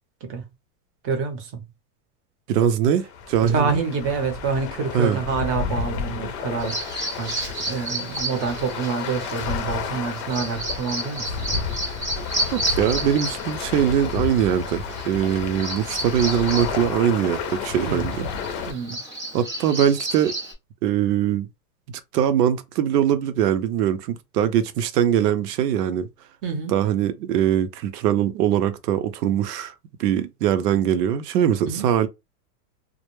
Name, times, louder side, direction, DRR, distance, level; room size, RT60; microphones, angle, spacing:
voice 1, 1.0-1.6 3.4-6.8 7.2-7.4 7.7-11.3 17.8-18.1 18.7-19.0 26.4-26.7 31.7-31.9, right 5 dB, 30° right, 0.8 m, -27 dB
voice 2, 2.5-3.8 4.9-5.2 12.5-18.3 19.3-20.3 20.8-21.5 22.1-26.1 26.7-29.7 30.0-32.1, right 9 dB, 75° right, 0.7 m, -22 dB
sound 1, 3.0-18.7, left 6 dB, 45° left, 0.6 m, -31 dB
Bird vocalization bird call bird song, 6.6-20.5, right 1 dB, 10° right, 0.4 m, -32 dB
2.2 x 2.1 x 3.0 m
supercardioid pair, 140°, 48 cm